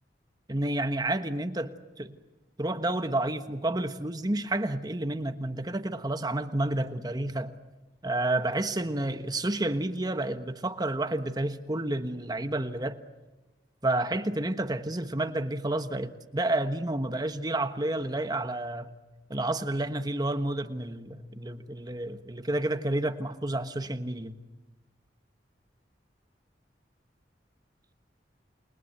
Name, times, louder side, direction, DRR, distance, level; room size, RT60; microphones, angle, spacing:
voice 1, 0.5-2.2 2.6-7.5 8.0-13.0 13.8-18.9 19.3-24.4, right 1 dB, 25° right, 1.2 m, -30 dB
29.0 x 22.0 x 7.9 m
head